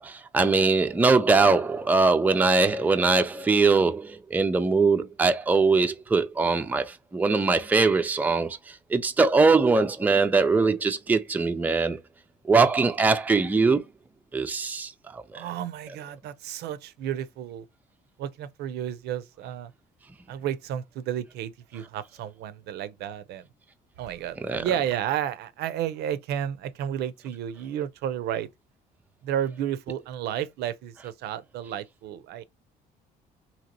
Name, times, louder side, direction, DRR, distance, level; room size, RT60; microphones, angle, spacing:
voice 1, 0.0-12.0 12.4-13.8 14.3-15.5 24.4-24.7, right 4 dB, 10° right, 0.4 m, -22 dB
voice 2, 15.3-17.7 18.2-19.7 20.3-23.4 24.0-28.5 29.2-32.4, right 10 dB, 75° right, 0.5 m, -32 dB
2.9 x 2.8 x 2.6 m
cardioid pair, 110°, 17 cm